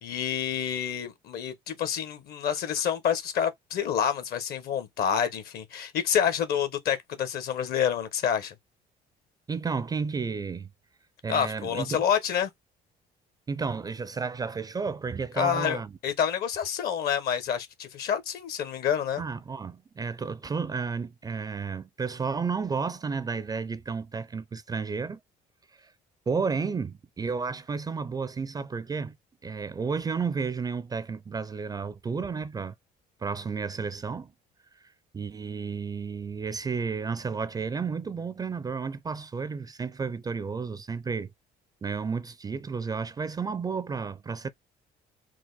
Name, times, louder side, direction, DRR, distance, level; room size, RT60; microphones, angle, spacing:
voice 1, 0.0-8.5 11.3-12.5 15.4-19.2, left 8 dB, 65° left, 1.1 m, -28 dB
voice 2, 9.5-10.7 11.2-12.0 13.5-16.0 19.2-25.2 25.8-25.9 26.3-29.2 29.4-32.7 33.2-34.3 35.1-41.3 41.8-44.5, right 5 dB, 20° right, 0.4 m, -32 dB
4.5 x 2.2 x 3.9 m
cardioid pair, 110°, 17 cm